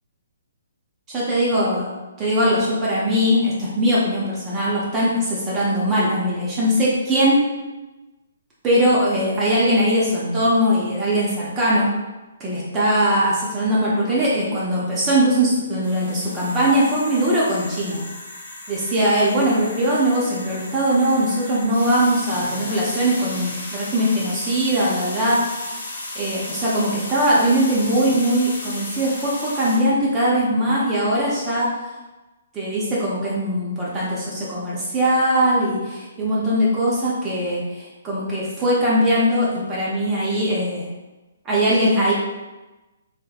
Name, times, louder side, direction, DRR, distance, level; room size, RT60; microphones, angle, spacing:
voice 1, 1.1-1.9 2.2-7.4 8.6-11.9 12.4-18.0 18.7-25.6 26.1-31.7 32.5-40.9 41.4-42.1, equal, 20° right, -7 dB, 0.5 m, -20 dB
sound 1, 15.8-29.8, left 2 dB, 65° left, 0.9 m, -35 dB
2.7 x 2.1 x 2.3 m, 1.1 s
hypercardioid pair, 150°, 0 cm